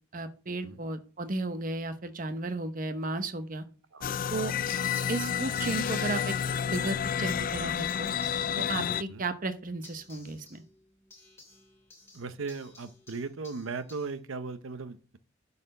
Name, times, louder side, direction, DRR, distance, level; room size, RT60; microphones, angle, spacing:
voice 1, 0.1-3.6 4.3-4.5 5.1-6.3 6.6-8.1 8.6-10.6, right 2 dB, 45° right, 9 dB, 0.9 m, -34 dB
sound 1, 4.0-9.0, left 8 dB, 45° left, 0.4 m, -30 dB
sound 2, 4.7-14.2, left 2 dB, 15° left, 3.1 m, -55 dB
voice 2, 8.9-9.2 12.1-15.2, right 4 dB, 90° right, 12 dB, 0.7 m, -38 dB
11.0 x 4.2 x 6.5 m, 0.39 s
head